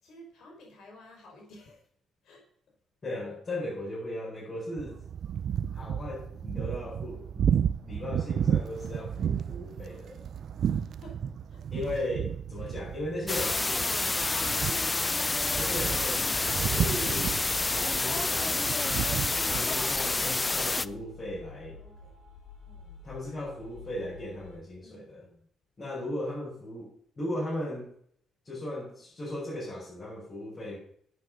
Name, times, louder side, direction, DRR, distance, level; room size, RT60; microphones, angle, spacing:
voice 1, 0.0-1.8 2.2-2.4 9.9-10.0 10.6-12.0 21.8-22.1 22.6-23.0 24.8-25.5, equal, 75° left, 0 dB, 4.8 m, -53 dB
voice 2, 3.0-5.0 5.7-7.5 7.8-10.2 11.7-13.7 15.5-18.6 19.5-21.8 23.0-25.3 25.8-26.9 27.2-27.9 28.4-30.8, left 1 dB, 35° left, -7 dB, 6.1 m, -37 dB
sound 1, 4.8-19.6, right 8 dB, 65° right, 0.5 m, -33 dB
sound 2, 13.3-20.9, left 3 dB, 20° left, 0.5 m, -28 dB
sound 3, 18.6-24.6, left 5 dB, 90° left, 4.0 m, -49 dB
9.4 x 8.4 x 6.5 m, 0.64 s
cardioid pair, 90°, 0 cm